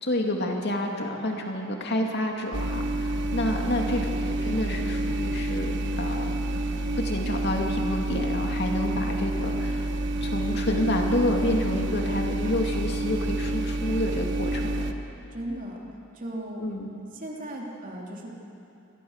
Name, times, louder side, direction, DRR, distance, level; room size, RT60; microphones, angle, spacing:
voice 1, 0.0-6.3 7.0-9.9 10.2-14.8 16.6-16.9, left 1 dB, 55° left, 1 dB, 2.6 m, -29 dB
sound 1, 2.5-14.9, right 1 dB, 60° right, 1.2 m, -28 dB
voice 2, 15.3-15.8 16.1-16.7 17.1-18.3, right 1 dB, 40° right, -1 dB, 3.2 m, -37 dB
27.5 x 20.0 x 7.3 m, 2.8 s
head